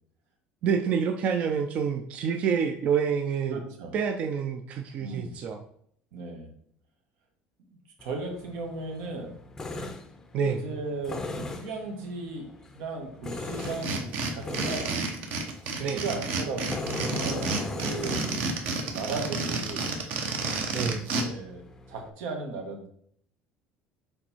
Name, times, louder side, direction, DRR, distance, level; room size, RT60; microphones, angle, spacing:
voice 1, 0.6-3.6 3.9-5.6 10.3-10.8 15.8-16.0 20.7-21.1, right 7 dB, 35° right, 5 dB, 0.5 m, -28 dB
voice 2, 3.5-3.9 5.0-5.4 6.1-6.5 8.0-9.3 10.4-15.0 15.6-18.4 18.9-19.9 20.8-22.9, right 3 dB, 80° right, 2 dB, 1.7 m, -36 dB
Tools, 8.0-22.1, left 2 dB, 10° left, 0.6 m, -40 dB
sound 1, 13.6-21.2, right 3 dB, 50° right, 1.0 m, -30 dB
6.6 x 4.3 x 4.5 m, 0.65 s
cardioid pair, 180°, 4 cm